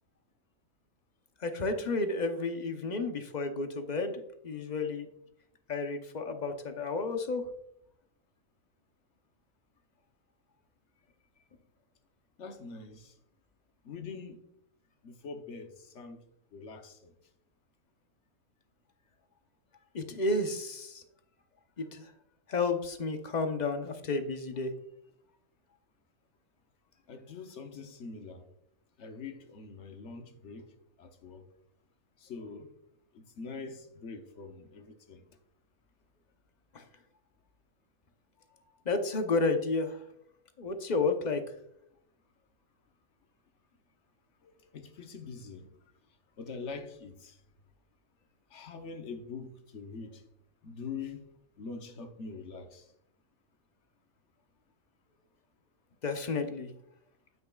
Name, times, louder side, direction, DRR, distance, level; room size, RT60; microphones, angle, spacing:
voice 1, 1.4-5.1 5.7-7.4 19.9-21.0 21.8-22.0 22.5-24.7 36.7-36.8 38.9-40.0 40.6-41.4 56.0-56.7, left 3 dB, 40° left, 0.7 m, -31 dB
voice 2, 12.4-13.1 13.8-14.4 15.0-16.2 16.5-17.1 27.1-28.4 29.0-30.7 31.0-31.4 32.2-32.7 33.1-35.2 44.4-45.7 46.4-47.4 48.5-50.2 50.6-51.3 51.6-52.9, left 4 dB, 60° left, 1.1 m, -44 dB
9.4 x 8.2 x 2.3 m
omnidirectional pair, 1.5 m